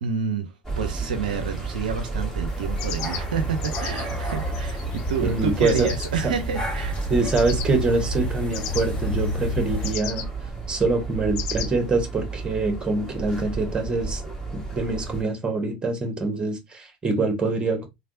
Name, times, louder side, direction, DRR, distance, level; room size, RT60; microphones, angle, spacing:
voice 1, 0.0-7.1, right 6 dB, 75° right, 0.5 m, -29 dB
sound 1, 0.6-15.2, right 3 dB, 5° left, 1.8 m, -32 dB
sound 2, 2.5-9.9, equal, 20° left, 1.5 m, -31 dB
sound 3, 2.8-6.1 7.2-7.7 8.5-8.8 9.8-10.2 11.4-11.7, left 11 dB, 60° left, 0.5 m, -35 dB
voice 2, 5.2-5.9 7.1-10.3 10.7-14.2 14.5-17.9, right 3 dB, 20° right, 1.2 m, -25 dB
3.2 x 2.4 x 2.6 m
hypercardioid pair, 80°, 4 cm